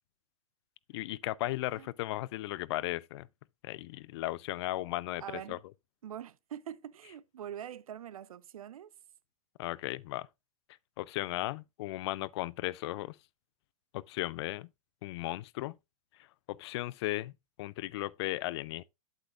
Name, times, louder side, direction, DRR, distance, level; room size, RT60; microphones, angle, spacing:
voice 1, 0.9-3.3 3.6-5.6 9.6-10.3 11.0-13.2 13.9-14.7 15.0-15.8 16.5-17.3 17.6-18.8, left 17 dB, 50° left, 0.4 m, -36 dB
voice 2, 5.2-5.6 6.0-8.9, right 10 dB, 80° right, 0.5 m, -44 dB
8.4 x 8.1 x 2.4 m
hypercardioid pair, 125°, 18 cm